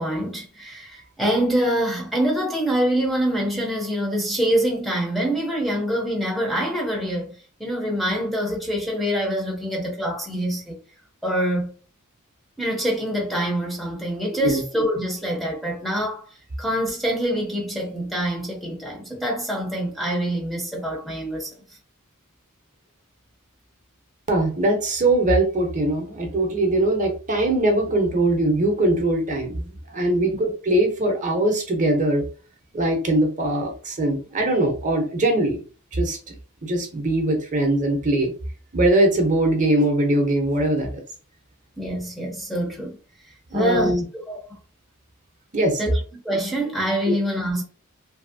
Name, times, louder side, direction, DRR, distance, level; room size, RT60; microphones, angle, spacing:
voice 1, 0.0-10.8 11.2-11.7 12.6-16.2 16.6-21.5 41.8-43.0 43.5-44.4 45.8-47.6, equal, ahead, 0.6 m, -25 dB
voice 2, 24.3-32.2 32.7-35.6 35.9-36.2 36.6-38.3 38.7-40.9 43.5-44.0 45.5-45.8 47.1-47.2, right 1 dB, 35° right, 0.7 m, -21 dB
2.8 x 2.7 x 2.6 m
head